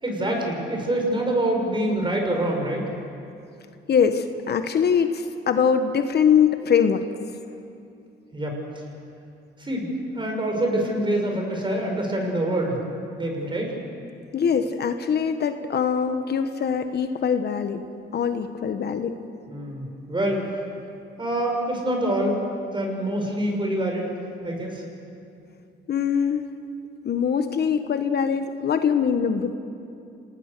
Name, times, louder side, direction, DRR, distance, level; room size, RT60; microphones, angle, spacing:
voice 1, 0.0-2.8 8.3-8.6 9.6-12.8 13.2-13.7 19.5-20.4 21.2-22.4 22.7-24.1 24.4-24.8, right 1 dB, 25° right, 1 dB, 6.2 m, -25 dB
voice 2, 3.9-7.0 14.3-17.8 18.1-19.2 25.9-26.5 27.0-29.5, left 7 dB, 55° left, 8 dB, 1.2 m, -22 dB
27.5 x 19.5 x 6.7 m, 2.6 s
cardioid pair, 90°, 20 cm